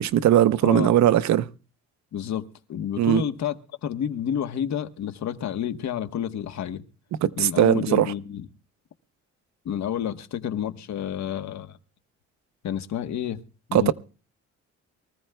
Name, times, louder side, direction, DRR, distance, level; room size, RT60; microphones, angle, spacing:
voice 1, 0.0-1.5 3.0-3.2 7.2-8.1 13.7-13.9, right 11 dB, 65° right, 0.7 m, -19 dB
voice 2, 2.1-3.6 3.8-6.8 7.4-8.5 9.6-11.8 12.6-13.4 13.7-13.9, left 9 dB, 65° left, 1.1 m, -29 dB
23.5 x 14.5 x 2.2 m
cardioid pair, 90°, 30 cm